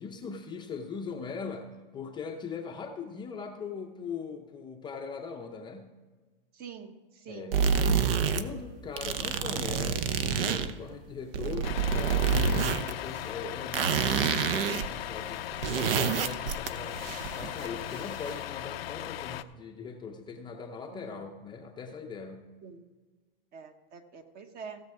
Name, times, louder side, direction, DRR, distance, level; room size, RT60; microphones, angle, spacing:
voice 1, 0.0-1.7 1.9-5.9 7.3-17.1 17.3-22.5, left 5 dB, 15° left, 3 dB, 0.6 m, -40 dB
voice 2, 6.6-6.9 7.2-8.0 20.9-21.3 22.6-22.8 23.5-24.8, right 6 dB, 30° right, 8 dB, 1.1 m, -45 dB
sound 1, 7.5-8.4 8.9-10.7 11.2-12.9 13.2-13.3 13.7-14.9 15.1-15.2 15.5-17.9, right 6 dB, 70° right, 0.9 m, -28 dB
Truck, 11.6-19.4, left 12 dB, 85° left, 0.6 m, -38 dB
16.0 x 7.1 x 4.8 m, 1.4 s
supercardioid pair, 140°, 29 cm